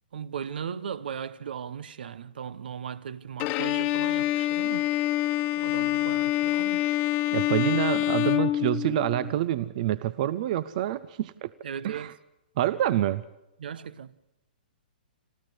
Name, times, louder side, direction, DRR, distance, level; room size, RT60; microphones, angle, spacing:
voice 1, 0.1-4.9 5.6-7.0 11.6-12.1 13.6-14.1, right 7 dB, 75° right, 1.0 m, -37 dB
Bowed string instrument, 3.4-9.3, left 15 dB, 35° left, 1.2 m, -26 dB
voice 2, 7.3-11.5 11.8-12.1 12.6-13.2, right 13 dB, 50° right, 0.7 m, -27 dB
27.0 x 14.0 x 8.0 m
hypercardioid pair, 140°, 5 cm